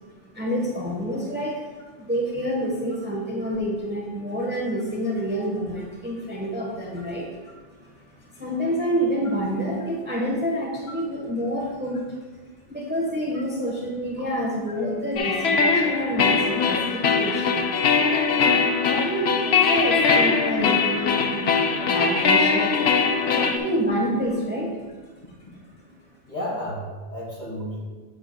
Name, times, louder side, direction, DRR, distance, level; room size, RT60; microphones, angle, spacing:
voice 1, 0.3-1.7 2.0-7.5 7.8-12.2 12.7-17.7 18.5-22.8 23.2-24.9 25.8-25.9, equal, 10° right, -3 dB, 1.1 m, -28 dB
sound 1, 15.2-23.6, left 5 dB, 70° left, 0.9 m, -21 dB
voice 2, 26.3-27.8, equal, 45° left, -5 dB, 2.2 m, -32 dB
8.7 x 7.7 x 2.2 m, 1.4 s
omnidirectional pair, 1.1 m